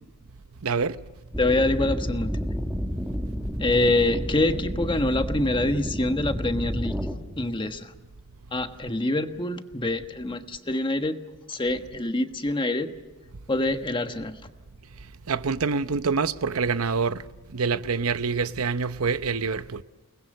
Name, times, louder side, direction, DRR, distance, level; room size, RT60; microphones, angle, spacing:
voice 1, 0.6-1.0 15.3-17.2 17.5-19.8, right 5 dB, 85° right, 0.8 m, -26 dB
sound 1, 1.3-7.1, equal, 5° right, 2.0 m, -30 dB
voice 2, 1.4-2.5 3.6-7.0 7.4-7.9 8.5-11.2 11.5-12.9 13.5-14.4, left 2 dB, 25° left, 1.4 m, -25 dB
29.5 x 20.5 x 6.7 m
head